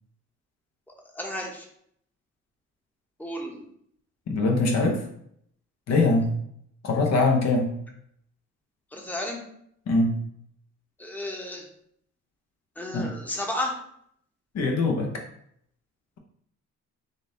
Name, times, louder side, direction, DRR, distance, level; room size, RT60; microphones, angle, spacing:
voice 1, 0.9-1.7 3.2-3.7 8.9-9.4 11.0-11.7 12.8-13.8, left 1 dB, 5° left, 0 dB, 0.9 m, -33 dB
voice 2, 4.3-5.1 5.9-6.3 6.8-7.7 9.9-10.1 12.9-13.1 14.5-15.1, left 3 dB, 60° left, 2 dB, 0.9 m, -22 dB
3.8 x 2.6 x 3.8 m, 0.68 s
cardioid pair, 90°, 30 cm